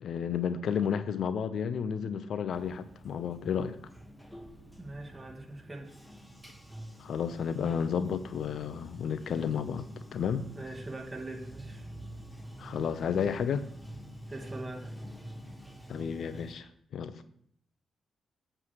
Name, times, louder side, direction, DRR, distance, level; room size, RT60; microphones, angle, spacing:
voice 1, 0.0-3.8 7.0-9.9 10.1-10.4 12.6-13.7 15.9-17.2, left 7 dB, 70° left, 0.5 m, -32 dB
Bathtub (filling or washing), 2.5-16.6, right 1 dB, 5° left, 1.3 m, -47 dB
voice 2, 4.8-5.9 10.5-11.9 14.3-14.9, right 2 dB, 25° right, 2.2 m, -42 dB
7.3 x 3.3 x 6.2 m
supercardioid pair, 50°, 0 cm